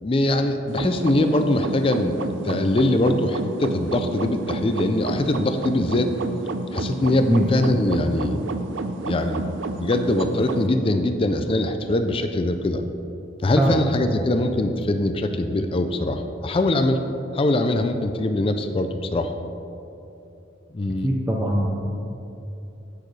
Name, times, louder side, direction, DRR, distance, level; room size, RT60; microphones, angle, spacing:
voice 1, 0.0-2.2 2.4-6.1 6.7-8.4 9.0-9.4 9.8-12.8 13.4-17.0 17.3-19.3 20.7-21.1, left 1 dB, 30° left, 7 dB, 0.4 m, -22 dB
sound 1, 0.7-10.7, right 3 dB, 80° right, 0.5 m, -30 dB
voice 2, 21.0-21.7, right 1 dB, 10° right, -3 dB, 0.7 m, -21 dB
16.0 x 6.5 x 3.3 m, 2.8 s
head